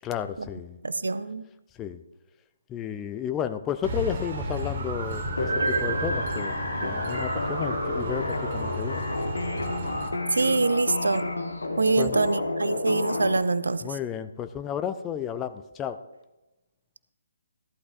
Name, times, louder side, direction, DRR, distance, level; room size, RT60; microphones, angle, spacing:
voice 1, 0.0-0.8 1.8-2.0 2.7-9.0 12.0-12.2 13.8-16.0, left 9 dB, 15° left, 10 dB, 0.4 m, -32 dB
voice 2, 0.8-1.4 10.3-11.3 11.8-13.9, right 3 dB, 65° right, 15 dB, 0.5 m, -25 dB
sound 1, 3.8-10.1, right 2 dB, 40° right, 1.5 m, -31 dB
sound 2, 5.4-13.4, left 2 dB, 65° left, 1.3 m, -30 dB
14.5 x 11.5 x 2.6 m, 1.0 s
figure-of-eight pair, 140°, 0 cm